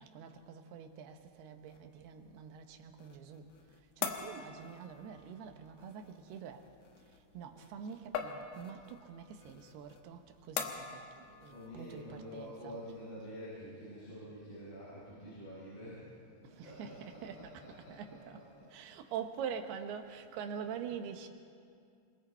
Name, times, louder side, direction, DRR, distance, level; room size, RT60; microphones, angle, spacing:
voice 1, 0.0-3.5 4.0-6.7 7.3-12.8 16.4-17.5 17.9-18.4 18.7-21.3, right 7 dB, 80° right, 3.1 m, -45 dB
sound 1, 1.7-12.5, left 7 dB, 85° left, 3.3 m, -45 dB
voice 2, 11.5-16.1 16.4-18.9 19.7-19.8, equal, 60° left, 8.0 m, -48 dB
28.0 x 21.5 x 4.5 m
omnidirectional pair, 4.5 m